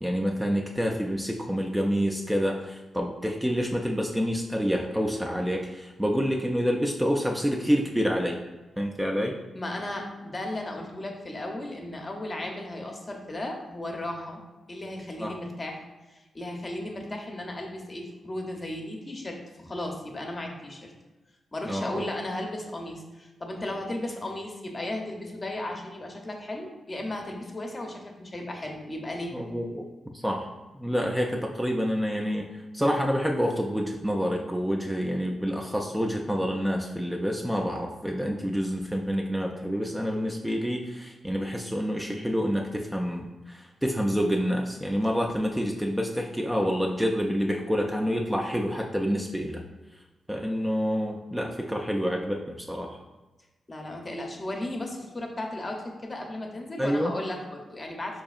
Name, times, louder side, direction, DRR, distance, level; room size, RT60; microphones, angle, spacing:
voice 1, 0.0-8.4 8.8-9.4 15.2-15.4 21.7-22.0 29.3-29.9 30.1-30.5 30.7-49.6 50.3-53.0 56.8-57.1, equal, 5° right, 0 dB, 0.3 m, -28 dB
voice 2, 9.5-14.4 14.7-20.9 21.5-29.3 53.7-58.2, left 1 dB, 35° left, 2 dB, 0.7 m, -35 dB
4.0 x 2.7 x 2.3 m, 1.2 s
cardioid pair, 60°, 0 cm